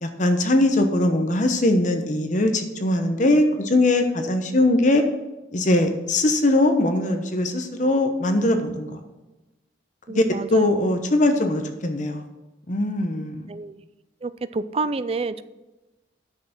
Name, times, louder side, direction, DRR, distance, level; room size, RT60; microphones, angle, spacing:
voice 1, 0.0-5.0 5.5-9.0 10.1-10.2 10.5-12.3 12.7-13.5, left 1 dB, 40° left, 6 dB, 1.0 m, -21 dB
voice 2, 10.1-10.8 13.5-13.8 14.2-15.4, right 3 dB, 30° right, 13 dB, 0.4 m, -29 dB
10.0 x 6.7 x 5.9 m, 1.1 s
head